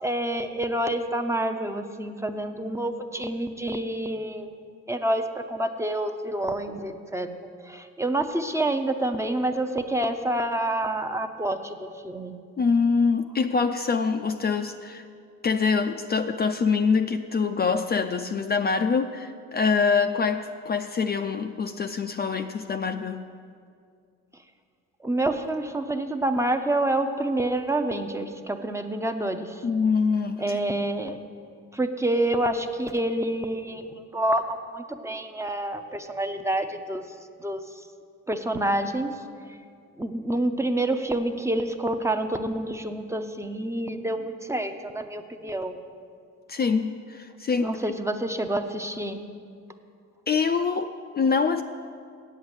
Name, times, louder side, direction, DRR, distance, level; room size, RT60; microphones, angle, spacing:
voice 1, 0.0-4.5 4.9-7.3 7.7-12.4 25.0-29.6 30.4-31.2 31.7-33.8 34.1-37.0 37.4-37.6 38.3-39.1 40.0-45.8 47.6-49.2, right 1 dB, 10° right, 6 dB, 0.6 m, -28 dB
voice 2, 12.6-15.0 15.4-23.3 29.6-30.6 46.5-47.8 50.3-51.6, left 5 dB, 35° left, 7 dB, 0.4 m, -25 dB
8.1 x 8.1 x 7.8 m, 2.3 s
cardioid pair, 90°, 30 cm